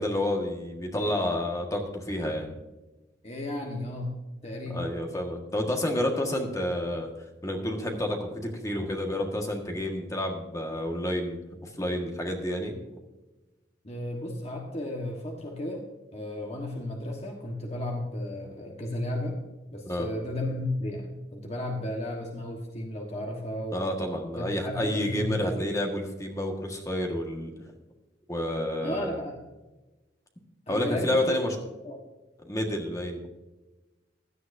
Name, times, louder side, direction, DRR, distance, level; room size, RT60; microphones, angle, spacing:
voice 1, 0.0-2.6 4.7-7.1 7.4-13.0 19.8-20.1 23.7-27.5 28.3-29.2 30.7-31.5 32.4-33.3, left 1 dB, 20° left, 2 dB, 1.6 m, -30 dB
voice 2, 3.2-4.9 13.8-15.8 16.1-19.4 19.7-23.8 24.3-25.6 28.8-29.4 30.7-31.4 31.8-32.0, left 1 dB, 35° left, 0 dB, 1.5 m, -34 dB
16.5 x 11.0 x 2.7 m, 1.1 s
head